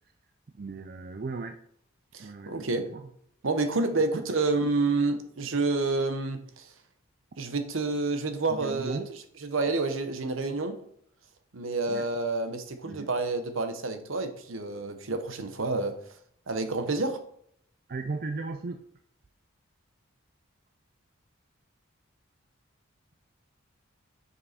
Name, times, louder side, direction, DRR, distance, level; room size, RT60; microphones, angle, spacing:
voice 1, 0.5-1.6 2.2-3.0 8.5-9.1 11.9-12.1 12.8-13.1 17.9-18.8, right 3 dB, 45° right, 6 dB, 0.4 m, -36 dB
voice 2, 2.1-2.9 3.4-6.6 7.4-9.0 9.4-10.8 11.5-16.0 16.5-17.2, right 3 dB, 75° right, 8 dB, 0.9 m, -29 dB
6.9 x 5.4 x 4.3 m, 0.68 s
head